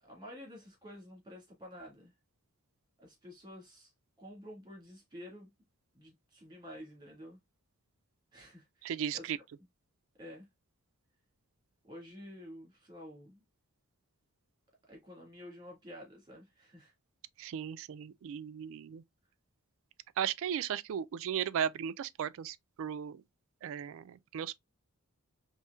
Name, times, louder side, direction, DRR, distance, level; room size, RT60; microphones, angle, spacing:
voice 1, 0.0-2.1 3.0-3.9 4.2-5.5 5.9-7.4 8.3-9.3 10.2-10.5 11.8-13.4 14.9-16.9, equal, 20° right, 1.9 m, -50 dB
voice 2, 8.8-9.4 17.4-19.0 20.2-23.2 23.6-24.6, right 8 dB, 65° right, 0.3 m, -36 dB
4.3 x 3.1 x 2.2 m
head